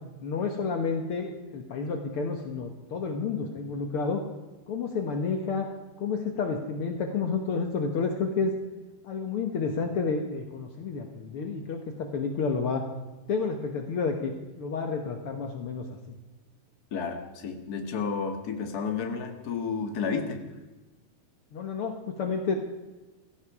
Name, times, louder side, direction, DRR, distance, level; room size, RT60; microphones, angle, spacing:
voice 1, 0.2-4.2 4.7-5.7 6.0-8.5 9.0-12.8 13.3-14.3 14.6-15.9 21.5-22.6, left 5 dB, 80° left, 4 dB, 1.2 m, -30 dB
voice 2, 16.9-20.4, left 5 dB, 50° left, 5 dB, 1.1 m, -31 dB
17.0 x 15.5 x 4.8 m, 1.2 s
omnidirectional pair, 4.4 m